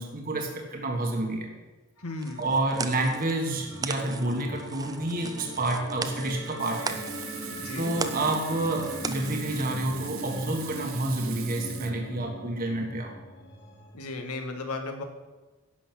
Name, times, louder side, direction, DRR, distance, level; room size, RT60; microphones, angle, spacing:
voice 1, 0.0-1.5 2.4-7.0 7.8-13.1, right 2 dB, 40° right, 2 dB, 1.4 m, -29 dB
voice 2, 2.0-2.4 7.6-8.0 13.9-15.0, left 2 dB, 85° left, 5 dB, 1.7 m, -35 dB
sound 1, 2.0-13.9, equal, 50° left, 2.1 m, -41 dB
sound 2, 2.2-9.8, right 5 dB, 15° right, 0.5 m, -39 dB
Frying (food), 6.6-11.9, right 11 dB, 65° right, 1.0 m, -42 dB
11.0 x 6.1 x 7.6 m, 1.2 s
head